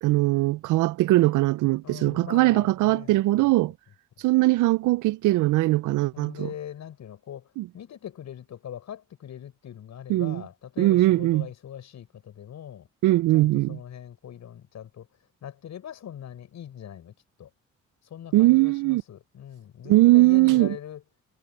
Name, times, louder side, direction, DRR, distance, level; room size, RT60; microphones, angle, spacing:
voice 1, 0.0-3.7 4.2-6.5 7.6-7.7 10.1-10.4 10.8-11.5 13.0-13.8 18.3-19.0 19.9-20.8, right 18 dB, 85° right, 0.5 m, -20 dB
voice 2, 1.8-3.5 6.1-12.9 13.3-15.1 15.4-17.1 17.4-17.5 18.1-21.0, left 10 dB, 65° left, 6.7 m, -41 dB
cardioid pair, 90°, 30 cm